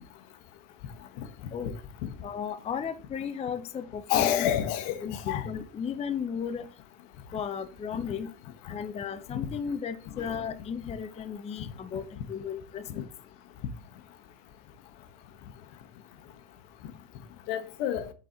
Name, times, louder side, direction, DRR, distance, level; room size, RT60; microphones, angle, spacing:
voice 1, 2.2-4.5 5.0-6.6 7.3-8.3 8.7-13.1, left 7 dB, 15° left, 0.5 m, -35 dB
voice 2, 4.1-5.5 9.3-9.4 10.2-10.3 17.5-18.1, left 10 dB, 70° left, 1.0 m, -28 dB
7.2 x 4.0 x 3.9 m
supercardioid pair, 110°, 39 cm